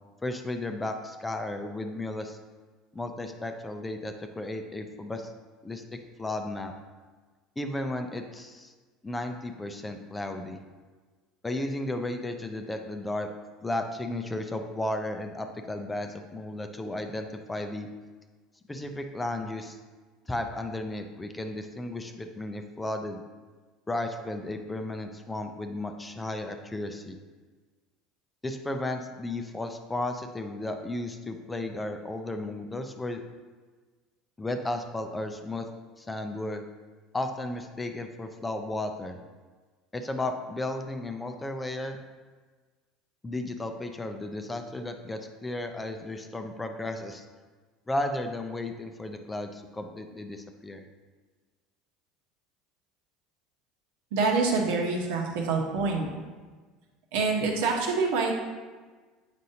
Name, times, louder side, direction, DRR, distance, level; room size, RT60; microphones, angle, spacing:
voice 1, 0.2-2.4 2.9-5.3 5.6-6.7 7.6-8.7 9.0-10.6 11.4-13.3 13.6-17.9 18.7-19.8 20.3-23.2 23.9-27.2 28.4-33.2 34.4-35.7 36.0-36.6 37.1-39.2 39.9-42.0 43.2-47.2 47.9-50.8, left 2 dB, 10° left, 6 dB, 0.4 m, -34 dB
voice 2, 54.1-56.1 57.1-58.3, right 4 dB, 85° right, 0 dB, 1.1 m, -26 dB
7.7 x 5.2 x 2.8 m, 1.4 s
cardioid pair, 145°, 0 cm